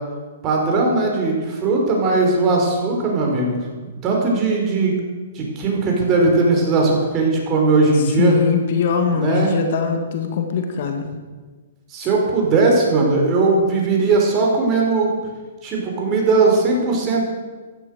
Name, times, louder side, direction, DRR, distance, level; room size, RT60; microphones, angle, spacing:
voice 1, 0.4-5.0 5.3-8.4 9.1-9.5 11.9-15.1 15.6-17.3, right 3 dB, 30° right, 0 dB, 4.9 m, -18 dB
voice 2, 8.2-11.0, left 6 dB, 60° left, 5 dB, 2.3 m, -21 dB
15.0 x 12.0 x 6.6 m, 1.3 s
hypercardioid pair, 135°, 0 cm